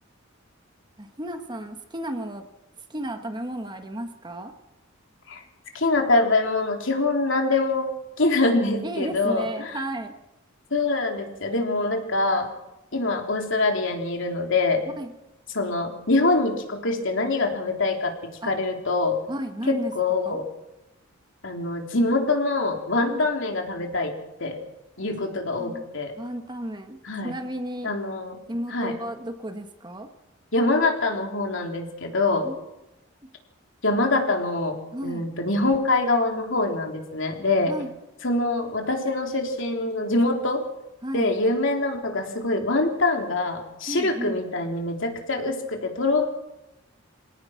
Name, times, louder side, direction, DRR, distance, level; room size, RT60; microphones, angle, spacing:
voice 1, 1.0-2.4 2.9-4.5 8.8-10.1 15.0-15.1 18.4-18.5 19.3-19.9 20.2-20.4 23.1-23.3 25.6-25.9 26.2-27.9 28.5-30.1 32.4-32.6 34.9-35.2 37.7-37.9 41.0-41.3 43.9-44.4, right 1 dB, 20° right, 6 dB, 1.5 m, -33 dB
voice 2, 5.7-7.9 8.2-9.7 10.7-12.5 12.9-14.8 15.5-18.1 18.4-19.2 19.7-20.4 21.4-24.1 24.4-24.6 25.0-26.1 27.0-27.3 27.8-28.4 28.7-29.0 30.5-32.5 33.8-34.8 35.0-37.7 38.2-40.6 41.1-46.2, left 2 dB, 60° left, 3 dB, 3.6 m, -24 dB
26.0 x 18.0 x 5.9 m, 0.93 s
head